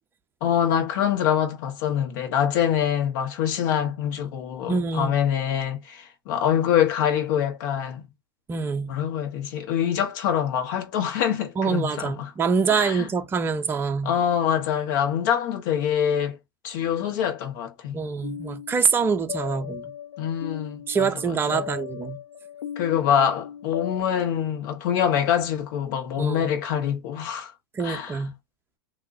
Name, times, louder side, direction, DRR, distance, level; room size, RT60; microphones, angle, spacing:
voice 1, 0.4-8.0 8.9-12.3 12.7-13.1 14.0-16.4 16.6-18.0 20.2-21.6 22.8-27.5 27.8-28.2, left 9 dB, 55° left, 1.4 m, -25 dB
voice 2, 4.7-5.1 8.5-8.9 11.6-14.1 17.9-19.9 20.9-22.2 26.2-26.5 27.7-28.3, right 5 dB, 20° right, 0.7 m, -25 dB
sound 1, 18.2-24.0, left 9 dB, 85° left, 0.6 m, -37 dB
3.8 x 2.9 x 2.7 m
hypercardioid pair, 115°, 12 cm